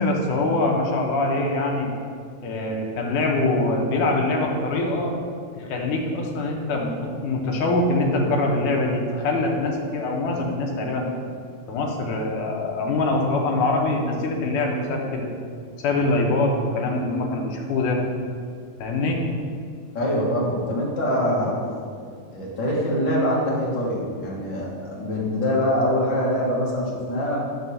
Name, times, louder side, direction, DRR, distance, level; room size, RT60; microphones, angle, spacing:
voice 1, 0.0-1.9 2.4-5.1 5.5-11.1 11.7-15.3 15.8-18.0 18.8-19.2, left 2 dB, 75° left, 0 dB, 2.5 m, -24 dB
voice 2, 19.9-21.5 22.3-27.4, equal, 45° left, -4 dB, 1.9 m, -24 dB
10.5 x 3.7 x 6.9 m, 2.2 s
omnidirectional pair, 3.7 m